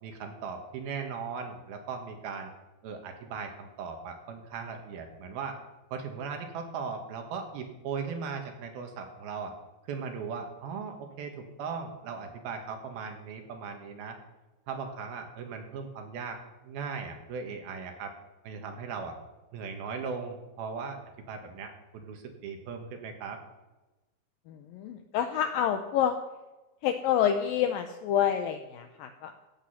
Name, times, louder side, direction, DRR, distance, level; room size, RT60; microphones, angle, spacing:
voice 1, 0.0-2.5 2.8-5.6 5.9-9.5 9.9-14.2 14.7-16.4 16.6-18.1 18.4-19.2 19.5-21.0 21.3-23.4, right 5 dB, 70° right, 4 dB, 3.2 m, -38 dB
voice 2, 24.5-26.2 26.8-29.4, left 9 dB, 80° left, 7 dB, 2.0 m, -28 dB
15.0 x 8.6 x 5.6 m, 1.1 s
omnidirectional pair, 4.7 m